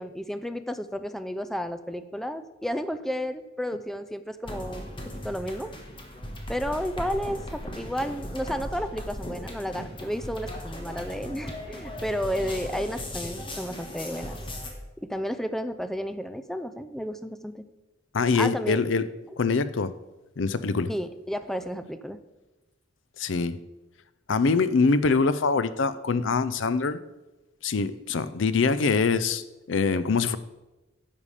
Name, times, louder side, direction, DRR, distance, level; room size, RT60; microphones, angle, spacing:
voice 1, 0.0-4.9 5.2-5.7 6.5-14.4 15.0-17.7 18.4-18.8 20.9-22.2, equal, ahead, 10 dB, 0.5 m, -32 dB
sound 1, 4.4-14.7, left 1 dB, 25° left, 1.5 m, -37 dB
voice 2, 18.1-19.1 19.4-19.9 20.4-20.9 23.2-23.6 24.3-27.0 27.6-30.4, left 4 dB, 70° left, 14 dB, 0.5 m, -24 dB
10.5 x 6.9 x 4.9 m, 1.1 s
head